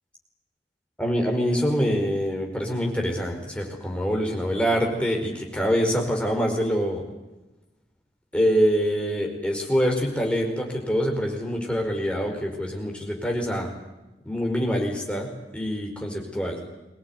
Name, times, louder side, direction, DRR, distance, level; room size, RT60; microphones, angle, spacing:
voice 1, 1.0-7.0 8.3-13.7 14.2-16.7, equal, 5° left, 1 dB, 5.1 m, -25 dB
23.5 x 18.5 x 9.6 m, 1.0 s
head